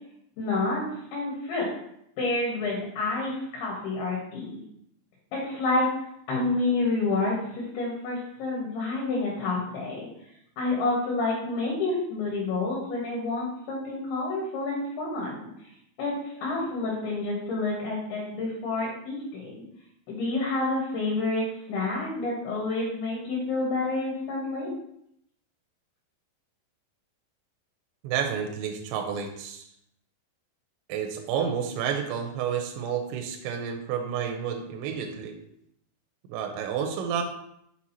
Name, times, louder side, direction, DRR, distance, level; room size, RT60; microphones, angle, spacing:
voice 1, 0.4-0.8 1.1-1.7 2.2-4.6 5.3-5.9 6.3-10.1 10.6-15.5 16.0-19.6 20.1-24.7, left 2 dB, 70° left, -3 dB, 3.0 m, -29 dB
voice 2, 28.0-29.7 30.9-35.4 36.3-37.2, right 7 dB, 85° right, 3 dB, 2.9 m, -30 dB
6.2 x 6.1 x 2.8 m, 0.74 s
omnidirectional pair, 5.4 m